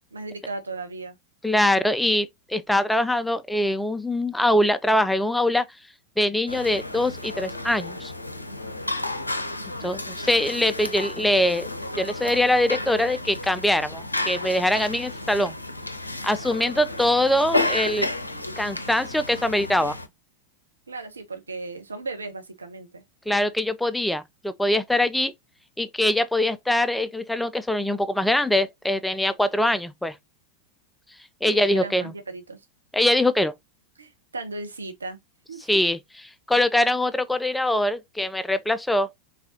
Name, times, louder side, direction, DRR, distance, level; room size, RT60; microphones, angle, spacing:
voice 1, 0.1-1.2 9.6-10.1 20.9-23.0 31.4-32.6 34.0-35.2 35.5-35.8, right 3 dB, 75° right, 0.9 m, -36 dB
voice 2, 1.4-5.6 6.2-8.1 9.8-11.7 12.0-15.5 16.2-18.1 18.6-20.0 23.3-25.3 25.8-30.1 31.4-32.1 32.9-33.5 35.7-36.0 36.5-39.1, left 1 dB, 5° left, 0.3 m, -23 dB
sound 1, 6.5-20.1, left 2 dB, 85° left, 0.5 m, -32 dB
3.9 x 3.5 x 2.7 m
figure-of-eight pair, 90°, 0 cm